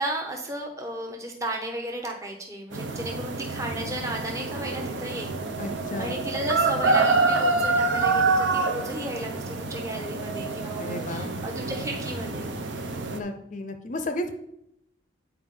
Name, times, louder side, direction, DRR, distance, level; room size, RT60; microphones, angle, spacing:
voice 1, 0.0-5.4 6.0-12.6, right 1 dB, 15° right, 1 dB, 0.8 m, -34 dB
sound 1, 2.7-13.2, right 3 dB, 70° right, 0.7 m, -27 dB
voice 2, 5.6-6.2 10.8-11.4 13.1-14.3, left 1 dB, 40° left, 7 dB, 0.5 m, -33 dB
8.9 x 4.5 x 3.7 m, 0.79 s
head